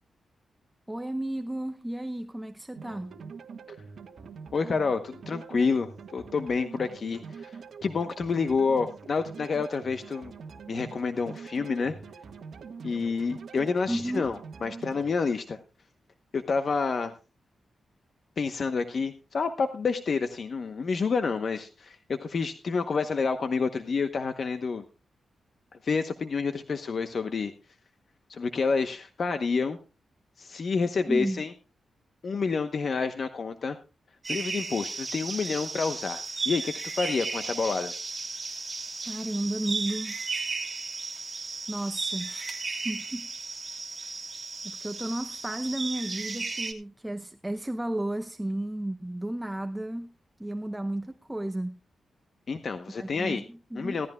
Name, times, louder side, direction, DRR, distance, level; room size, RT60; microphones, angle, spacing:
voice 1, 0.9-3.1 13.9-14.3 31.1-31.4 39.0-40.3 41.1-41.3 41.7-43.3 43.9-44.1 44.6-50.1 50.4-51.8 53.0-54.1, right 1 dB, 10° right, 0.7 m, -33 dB
sound 1, 2.8-15.1, right 5 dB, 65° right, 1.5 m, -44 dB
voice 2, 4.5-10.3 10.7-11.9 12.8-15.6 16.3-17.1 18.4-24.8 25.8-27.5 28.3-29.8 30.4-31.5 32.2-33.8 34.3-37.9 52.5-53.4 53.7-54.1, left 4 dB, 50° left, 1.0 m, -29 dB
sound 2, 34.2-46.7, right 3 dB, 30° right, 2.7 m, -35 dB
17.0 x 14.0 x 2.3 m
cardioid pair, 100°, 0 cm